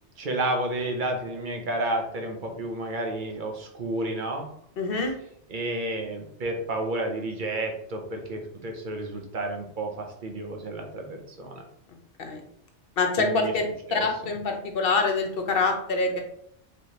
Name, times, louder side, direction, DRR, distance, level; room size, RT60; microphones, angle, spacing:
voice 1, 0.2-4.5 5.5-11.6 13.2-13.5 13.9-14.1, right 1 dB, 50° right, 3 dB, 0.8 m, -31 dB
voice 2, 4.8-5.1 12.2-12.4 13.0-13.6 13.9-16.2, left 3 dB, 55° left, 4 dB, 0.9 m, -25 dB
4.7 x 3.1 x 2.8 m, 0.68 s
omnidirectional pair, 1.2 m